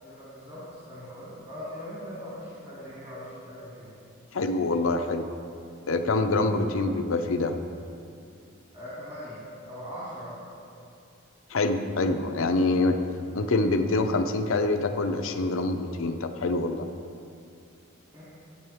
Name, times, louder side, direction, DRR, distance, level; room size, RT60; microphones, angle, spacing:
voice 1, 0.0-3.9 6.5-6.7 8.7-10.4 18.1-18.2, equal, 25° right, -10 dB, 2.3 m, -41 dB
voice 2, 4.3-5.3 5.9-7.6 11.5-13.0 13.3-16.9, left 2 dB, 70° left, 7 dB, 0.6 m, -25 dB
12.5 x 9.1 x 3.6 m, 2.5 s
head